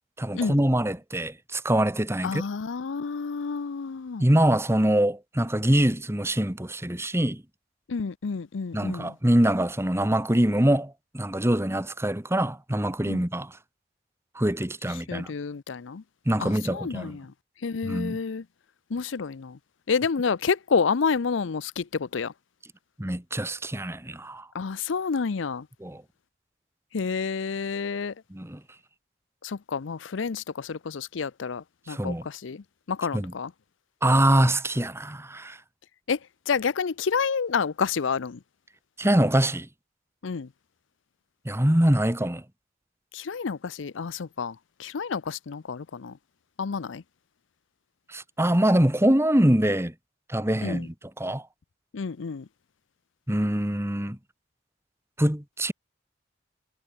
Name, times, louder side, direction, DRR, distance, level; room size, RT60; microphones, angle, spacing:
voice 1, 0.2-2.4 4.2-7.4 8.7-13.5 14.3-15.3 16.2-17.2 17.8-18.2 23.0-24.5 25.8-26.0 28.3-28.6 31.9-32.2 33.1-33.3 34.0-35.6 39.0-39.7 41.4-42.4 48.1-49.9 50.3-51.4 53.3-54.2 55.2-55.7, right 1 dB, 15° right, 1.7 m, -24 dB
voice 2, 2.2-4.3 7.9-9.1 13.1-13.2 15.1-16.0 16.4-17.3 17.6-18.4 18.9-19.6 19.9-22.3 24.5-25.7 26.9-28.1 29.4-33.5 36.1-36.2 36.5-38.4 40.2-40.5 43.1-46.1 46.6-47.0 50.6-50.9 51.9-52.5, left 5 dB, 75° left, 0.6 m, -29 dB
head